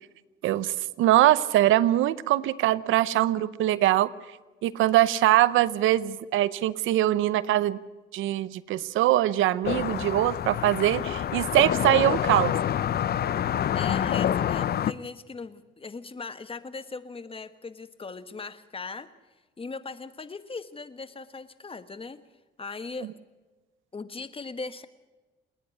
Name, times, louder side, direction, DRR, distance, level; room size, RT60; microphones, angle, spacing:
voice 1, 0.4-4.1 4.6-7.8 8.1-12.5, right 14 dB, 90° right, 17 dB, 0.7 m, -22 dB
sound 1, 9.6-14.9, left 10 dB, 55° left, 0.6 m, -27 dB
voice 2, 13.7-19.1 19.6-22.2 22.6-23.1 23.9-24.9, left 4 dB, 30° left, 12 dB, 1.3 m, -39 dB
29.0 x 10.0 x 9.6 m, 1.2 s
cardioid pair, 90°, 20 cm